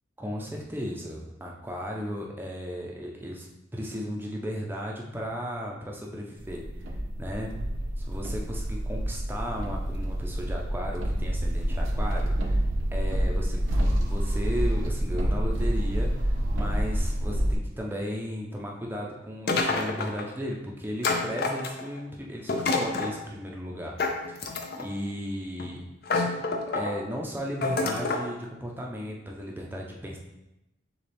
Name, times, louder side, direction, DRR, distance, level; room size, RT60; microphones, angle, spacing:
voice 1, 0.2-7.6 8.0-12.6 12.9-24.0 24.3-25.9 26.7-30.2, equal, 10° right, -1 dB, 0.5 m, -35 dB
sound 1, 6.4-17.5, equal, 80° right, 0.6 m, -27 dB
sound 2, 19.5-20.3 21.0-22.0 22.5-23.2 24.0-24.9 25.6-25.7 26.1-26.9 27.6-28.3, left 3 dB, 50° left, 0.5 m, -28 dB
6.7 x 2.3 x 3.4 m, 0.91 s
head